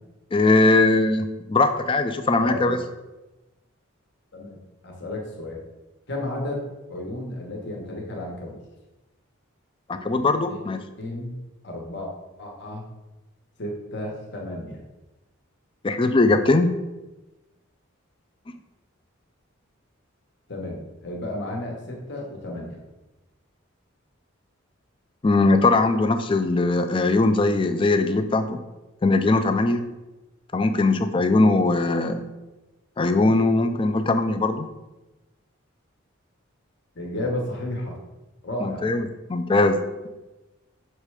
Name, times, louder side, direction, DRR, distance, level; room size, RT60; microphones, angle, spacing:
voice 1, 0.3-2.8 9.9-10.8 15.8-16.8 25.2-28.6 29.0-29.9 30.5-32.2 33.0-34.7 38.6-39.8, left 2 dB, 25° left, 8 dB, 0.4 m, -20 dB
voice 2, 2.4-2.8 4.3-4.6 4.8-5.6 6.1-8.6 9.9-10.2 10.5-10.6 11.0-11.4 11.6-12.1 12.4-12.8 13.6-14.8 20.5-22.8 36.9-38.0 38.4-38.9, left 1 dB, 55° left, -1 dB, 1.3 m, -32 dB
6.7 x 3.2 x 4.8 m, 1.1 s
head